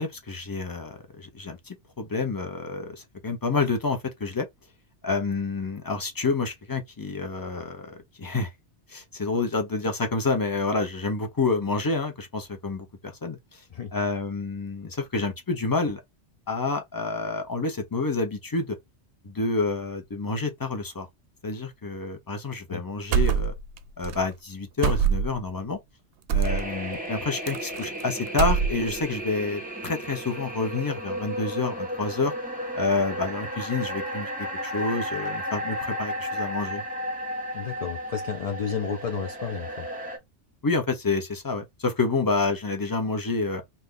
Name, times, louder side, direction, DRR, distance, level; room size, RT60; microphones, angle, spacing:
voice 1, 0.0-4.5 5.0-8.5 8.9-13.6 13.9-16.0 16.5-18.8 19.2-21.1 21.4-23.5 24.0-25.8 26.3-32.3 32.8-34.3 34.6-36.8 40.6-43.6, left 3 dB, 20° left, 0.7 m, -28 dB
sound 1, 23.1-23.8 24.0-24.2 24.8-25.5 26.3-26.6 27.5-28.0 28.3-29.0, right 7 dB, 65° right, 0.7 m, -24 dB
sound 2, 26.4-40.2, equal, 10° right, 0.9 m, -33 dB
voice 2, 37.5-39.9, left 6 dB, 55° left, 0.4 m, -32 dB
2.9 x 2.6 x 3.7 m
omnidirectional pair, 1.2 m